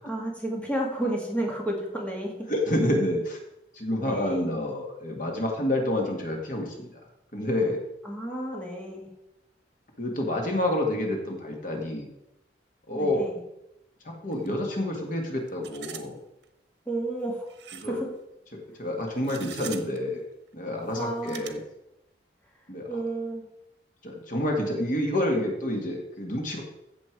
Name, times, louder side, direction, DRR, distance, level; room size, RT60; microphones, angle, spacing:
voice 1, 0.0-2.5 4.0-4.5 8.0-9.1 12.9-13.4 16.9-17.5 17.8-18.1 21.0-21.5 22.9-23.4, right 1 dB, 10° left, -2 dB, 2.1 m, -31 dB
voice 2, 2.5-3.4 3.7-6.9 7.3-7.8 10.0-12.1 12.9-13.3 14.1-16.2 17.8-18.0 18.5-20.2 20.5-21.6 22.7-22.9 24.0-26.6, left 1 dB, 50° left, 1 dB, 1.9 m, -28 dB
sound 1, 14.3-14.5 14.7-14.8 15.5-16.1 16.4-16.5 17.5-18.0 19.2-20.0 20.8-21.5, right 10 dB, 75° right, 1.2 m, -42 dB
15.0 x 7.0 x 4.7 m, 0.88 s
head